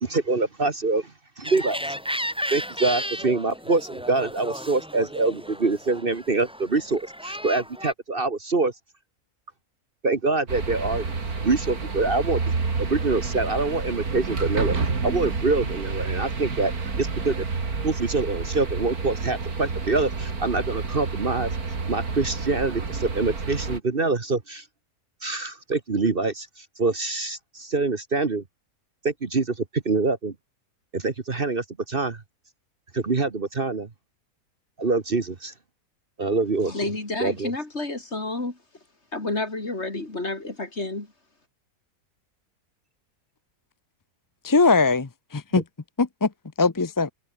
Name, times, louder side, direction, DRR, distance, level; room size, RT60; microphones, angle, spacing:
voice 1, 0.0-1.8 2.5-8.7 10.0-11.1 11.4-12.4 12.8-16.7 17.0-17.5 17.8-21.5 21.9-24.6 25.2-28.4 29.0-30.3 30.9-32.2 32.9-33.9 34.8-35.5 36.2-36.7 37.2-37.5, right 3 dB, 40° right, 1.6 m, -25 dB
sound 1, 1.4-7.9, equal, 5° right, 6.2 m, -34 dB
sound 2, 10.5-23.8, right 4 dB, 75° right, 3.3 m, -29 dB
voice 2, 36.6-38.6 39.1-41.1, left 2 dB, 45° left, 4.2 m, -30 dB
voice 3, 44.4-45.6 46.0-46.3 46.6-47.1, left 3 dB, 25° left, 0.4 m, -21 dB
omnidirectional pair, 1.6 m